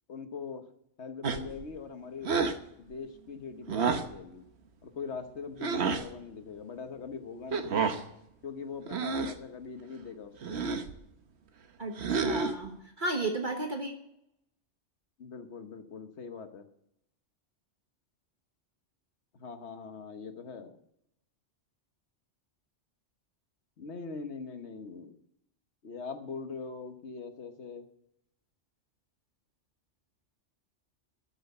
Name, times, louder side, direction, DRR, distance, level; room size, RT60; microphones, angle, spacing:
voice 1, 0.1-0.6 1.0-2.3 2.8-4.4 4.8-7.8 8.4-10.6 15.2-16.7 19.3-20.8 23.8-25.1 25.8-27.9, left 5 dB, 65° left, 8 dB, 1.5 m, -42 dB
sound 1, 1.2-1.6 2.2-2.6 3.7-4.2 5.6-6.1 7.5-8.0 8.9-9.4 10.4-10.9 12.0-12.7, right 5 dB, 65° right, 1.2 m, -30 dB
voice 2, 11.8-13.9, right 2 dB, 45° right, 3 dB, 1.3 m, -34 dB
14.0 x 6.3 x 8.0 m, 0.78 s
omnidirectional pair, 1.2 m